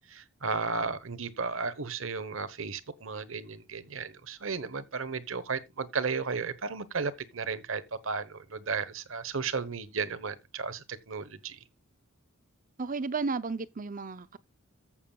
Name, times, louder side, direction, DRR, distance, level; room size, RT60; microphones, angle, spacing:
voice 1, 0.0-11.6, right 4 dB, 65° right, 1.0 m, -34 dB
voice 2, 12.8-14.4, right 4 dB, 40° right, 0.6 m, -33 dB
14.5 x 7.2 x 2.3 m
head